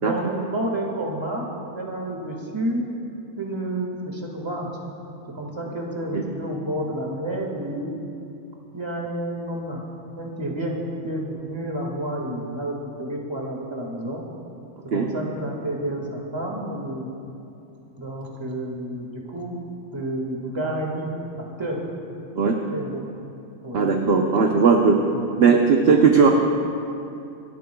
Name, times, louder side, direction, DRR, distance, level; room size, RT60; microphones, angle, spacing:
voice 1, 0.0-2.9 3.4-4.7 5.3-7.9 8.7-9.8 10.1-14.2 14.8-17.1 18.0-19.5 19.9-21.8 22.7-23.0 23.6-23.8 25.1-25.3 25.8-26.1, right 1 dB, 20° right, -1 dB, 1.7 m, -30 dB
voice 2, 23.7-25.0 25.4-26.3, right 5 dB, 50° right, 1 dB, 0.9 m, -17 dB
27.5 x 12.0 x 2.3 m, 2.7 s
omnidirectional pair, 1.6 m